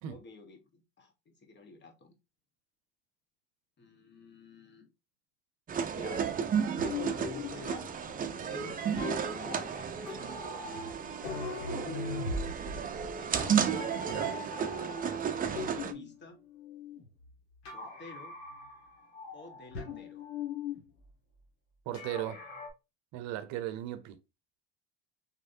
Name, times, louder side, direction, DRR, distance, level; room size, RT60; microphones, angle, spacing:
voice 1, 0.1-2.1 3.8-4.9 5.8-6.4 6.8-7.9 8.4-9.1 9.4-10.4 11.5-12.6 13.1-13.8 15.4-16.4 17.7-18.4 19.3-20.3, left 4 dB, 35° left, 1.4 m, -51 dB
sound 1, 5.7-15.9, right 7 dB, 30° right, 0.6 m, -33 dB
sound 2, 6.8-16.1 16.5-17.3 17.6-18.9 19.1-20.8 21.9-22.7, left 4 dB, 90° left, 1.4 m, -41 dB
voice 2, 21.9-22.4 23.1-24.2, right 12 dB, 65° right, 0.7 m, -37 dB
4.2 x 3.2 x 2.7 m
supercardioid pair, 85°, 31 cm